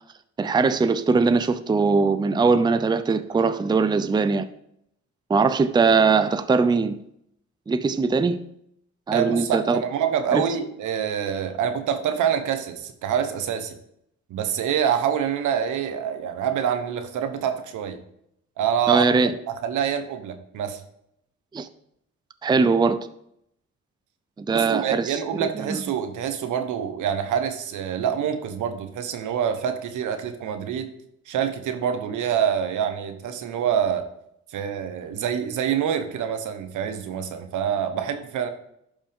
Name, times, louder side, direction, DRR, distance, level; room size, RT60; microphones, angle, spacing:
voice 1, 0.4-4.4 5.3-7.0 7.7-8.4 9.1-9.8 10.3-10.4 18.9-19.3 21.5-21.7 22.4-23.0 24.4-25.2 25.5-25.8, right 4 dB, 15° right, 12 dB, 0.5 m, -21 dB
voice 2, 9.1-13.8 14.3-18.0 18.6-19.0 19.6-20.8 24.5-30.9 31.3-34.1 34.5-38.5, right 8 dB, 80° right, 8 dB, 1.2 m, -26 dB
11.5 x 5.4 x 3.6 m, 0.74 s
cardioid pair, 90°, 30 cm